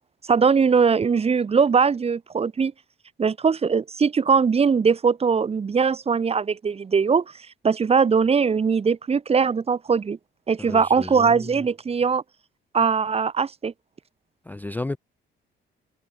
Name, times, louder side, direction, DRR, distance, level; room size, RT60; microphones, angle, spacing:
voice 1, 0.3-2.7 3.2-7.2 7.6-10.2 10.5-12.2 12.7-13.7, right 5 dB, 30° right, 0.8 m, -21 dB
voice 2, 10.7-11.4 14.5-15.0, left 2 dB, 10° left, 0.4 m, -32 dB
cardioid pair, 90°, 20 cm